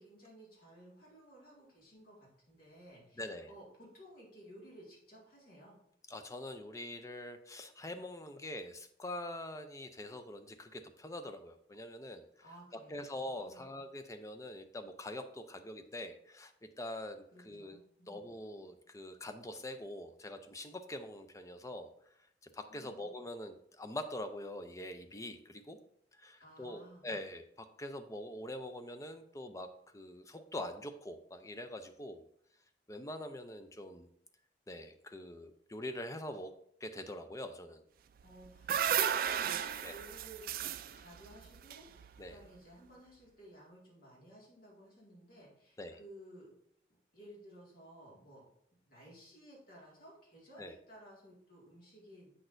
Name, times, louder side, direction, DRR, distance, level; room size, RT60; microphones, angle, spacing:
voice 1, 0.0-5.8 12.4-13.1 13.4-13.7 17.3-18.2 22.7-23.1 26.4-27.1 38.2-46.5 47.1-48.5 48.9-52.5, right 1 dB, 55° left, -4 dB, 2.0 m, -56 dB
voice 2, 3.2-3.5 6.1-12.3 12.9-16.5 16.8-17.8 18.1-21.9 22.5-25.8 26.2-32.2 32.9-34.1 34.7-36.5 36.8-37.8 39.8-39.9 42.2-42.4 45.8-46.0 50.6-50.8, left 1 dB, 20° left, 8 dB, 0.5 m, -44 dB
sound 1, 38.2-42.5, right 9 dB, 55° right, 0.3 m, -35 dB
7.6 x 6.1 x 2.6 m, 0.68 s
head